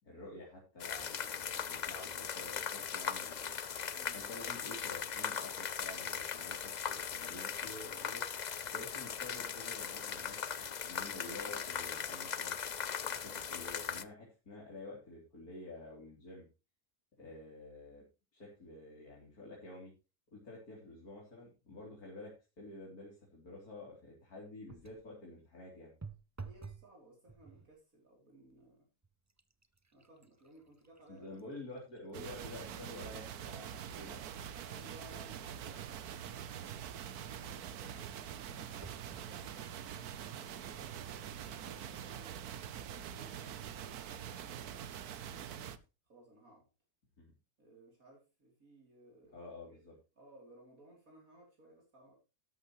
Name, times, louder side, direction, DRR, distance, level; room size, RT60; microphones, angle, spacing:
voice 1, 0.0-3.6 4.1-8.3 8.7-12.5 13.0-16.5 17.2-18.0 18.3-19.9 20.3-25.9 31.1-34.2 47.2-47.3 49.3-49.9, left 2 dB, 75° left, -4 dB, 4.1 m, -50 dB
sound 1, 0.8-14.0, left 7 dB, 55° left, 0.5 m, -39 dB
voice 2, 3.9-4.2 17.2-17.3 26.4-28.9 29.9-31.8 34.6-39.7 40.2-42.4 42.8-44.8 45.2-45.7 46.0-46.7 47.6-49.8 50.2-52.2, right 1 dB, 65° right, -1 dB, 3.8 m, -60 dB
sound 2, 24.7-25.1 26.0-26.9 27.3-27.8 28.5-28.6 29.0-32.6 33.1-33.2 33.9-36.6 38.8-39.3 40.0-40.1 40.4-40.5, right 4 dB, 20° right, 0.5 m, -53 dB
sound 3, 32.1-45.8, right 9 dB, 80° right, 1.4 m, -45 dB
13.0 x 11.5 x 3.1 m, 0.29 s
omnidirectional pair, 1.6 m